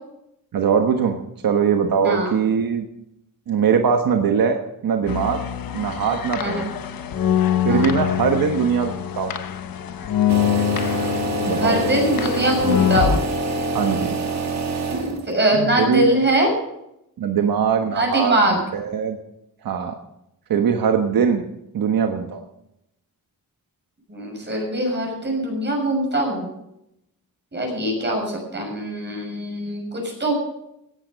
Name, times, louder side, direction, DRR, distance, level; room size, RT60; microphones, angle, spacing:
voice 1, 0.5-1.2 1.4-2.9 3.5-5.4 5.7-6.6 7.6-9.4 11.5-11.8 13.7-14.2 15.5-16.1 17.2-19.2 19.6-19.9 20.5-21.4 21.7-22.4, right 6 dB, 75° right, 4 dB, 1.4 m, -21 dB
sound 1, 5.1-13.2, left 10 dB, 80° left, 1.2 m, -24 dB
sound 2, 10.3-15.4, right 2 dB, 50° right, 2.3 m, -25 dB
voice 2, 11.6-13.2 15.3-16.5 17.9-18.6 24.1-26.4 27.5-30.3, right 1 dB, 30° right, 0 dB, 6.7 m, -22 dB
17.5 x 11.0 x 5.3 m, 0.82 s
wide cardioid pair, 125°, 35 cm